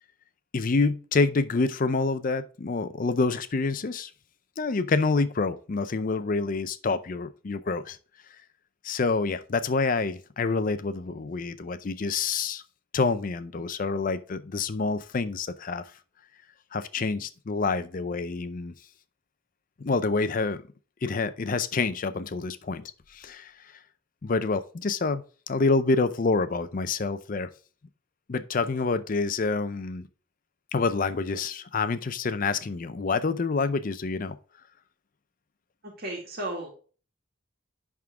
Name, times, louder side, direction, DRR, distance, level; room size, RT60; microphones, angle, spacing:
voice 1, 0.5-4.1 4.6-8.0 8.8-12.6 12.9-15.8 16.7-18.7 19.8-20.6 21.0-22.8 23.1-23.5 24.2-27.5 28.3-30.1 30.7-34.4, left 4 dB, 45° left, 0.5 m, -27 dB
voice 2, 35.8-36.7, right 1 dB, 50° right, 2.0 m, -34 dB
10.5 x 3.7 x 3.5 m
head